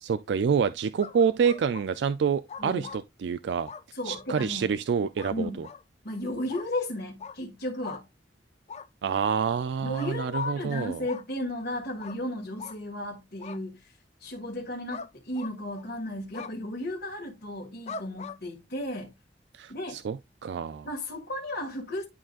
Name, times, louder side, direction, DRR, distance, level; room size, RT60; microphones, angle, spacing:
voice 1, 0.0-3.7 4.0-5.7 9.0-11.1 19.5-20.9, right 6 dB, 70° right, 0.3 m, -27 dB
sound 1, 1.0-1.8 2.5-3.0 3.7-4.3 5.2-5.3 5.6-5.8 6.5-6.7 7.2-7.4 7.8-8.0 8.7-8.9 9.9-10.5 11.1-11.2 12.0-12.2 12.6-12.8 13.4-13.6 14.9-15.1 15.3-15.9 16.3-16.5 17.9-18.4, left 5 dB, 40° left, 0.4 m, -41 dB
voice 2, 3.9-4.7 5.3-5.6 6.0-8.1 9.8-13.9 14.2-19.1 19.7-20.0 20.8-22.0, left 1 dB, 60° left, 1.7 m, -34 dB
11.0 x 3.8 x 2.4 m
head